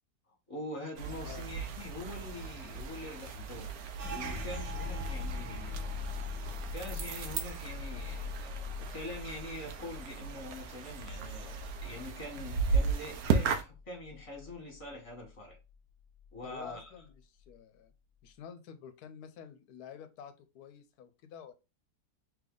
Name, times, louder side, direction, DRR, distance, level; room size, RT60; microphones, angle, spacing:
voice 1, 0.5-3.7 4.1-5.9 6.7-15.6 16.3-16.9, left 1 dB, 20° left, 1.3 m, -44 dB
sound 1, 1.0-13.6, right 5 dB, 70° right, 1.1 m, -36 dB
sound 2, 4.0-13.4 13.7-14.9 15.2-15.7 16.2-16.8, left 4 dB, 55° right, 1.2 m, -42 dB
voice 2, 16.4-17.9 18.2-21.5, left 8 dB, 75° left, 1.1 m, -49 dB
3.4 x 3.1 x 3.7 m
omnidirectional pair, 1.7 m